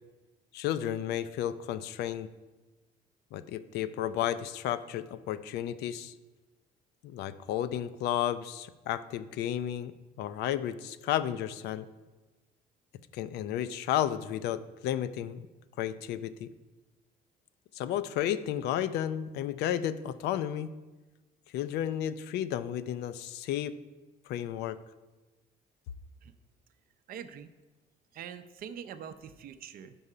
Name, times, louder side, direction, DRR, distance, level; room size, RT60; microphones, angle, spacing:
voice 1, 0.5-2.3 3.3-6.1 7.0-9.9 10.2-11.9 13.1-15.5 15.8-16.5 17.7-20.7 21.5-23.7 24.3-24.8, left 11 dB, 75° left, 14 dB, 0.4 m, -32 dB
voice 2, 27.1-27.5 28.1-30.0, right 8 dB, 60° right, 11 dB, 0.5 m, -44 dB
5.5 x 5.5 x 4.9 m, 1.2 s
cardioid pair, 110°, 17 cm